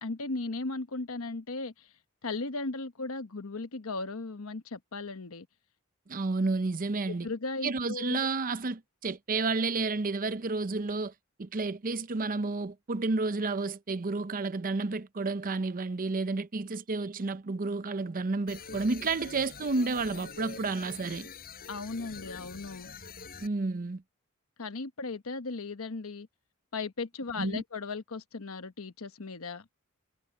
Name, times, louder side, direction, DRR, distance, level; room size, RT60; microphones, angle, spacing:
voice 1, 0.0-1.9 2.2-5.5 7.1-8.3 21.7-22.9 24.6-26.3 26.7-29.7, left 3 dB, 70° left, 1.1 m, -37 dB
voice 2, 6.1-7.3 7.6-11.1 11.4-21.3 23.4-24.0 27.4-27.6, right 3 dB, 40° right, 0.7 m, -31 dB
sound 1, 18.5-23.5, left 5 dB, 45° left, 6.4 m, -45 dB
head